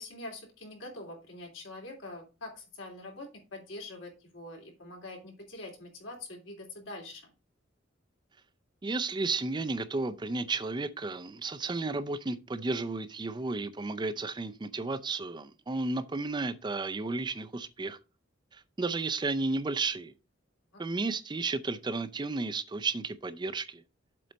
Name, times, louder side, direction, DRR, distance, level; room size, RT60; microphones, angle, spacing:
voice 1, 0.0-7.3, left 2 dB, 85° left, 3.1 m, -44 dB
voice 2, 8.8-18.0 18.5-20.1 20.8-23.8, right 3 dB, 25° right, 0.4 m, -33 dB
7.7 x 4.1 x 5.1 m
head